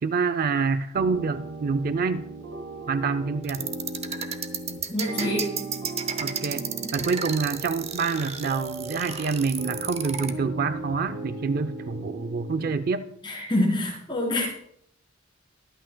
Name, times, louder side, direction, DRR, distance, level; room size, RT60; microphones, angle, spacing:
voice 1, 0.0-2.3 2.9-3.7 6.2-6.6 6.9-13.1, right 4 dB, 45° right, 12 dB, 0.4 m, -27 dB
sound 1, 0.9-12.8, right 2 dB, 75° right, 2.3 m, -37 dB
sound 2, 3.4-10.3, right 7 dB, 30° right, 0.8 m, -32 dB
voice 2, 4.9-5.7 6.8-7.0 13.2-14.5, left 1 dB, 25° left, -2 dB, 3.4 m, -26 dB
23.0 x 9.0 x 2.2 m, 0.71 s
head